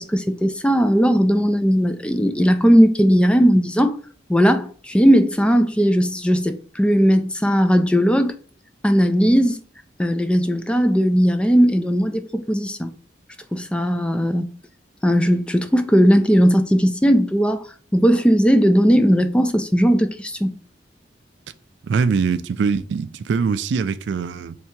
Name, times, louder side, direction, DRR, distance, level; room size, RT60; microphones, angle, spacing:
voice 1, 0.0-4.0 4.3-8.3 8.8-9.6 10.0-12.9 13.5-14.5 15.0-17.6 17.9-20.5, equal, 5° left, 0.3 m, -17 dB
voice 2, 21.8-24.6, right 5 dB, 80° right, 0.3 m, -22 dB
3.3 x 2.8 x 4.5 m
head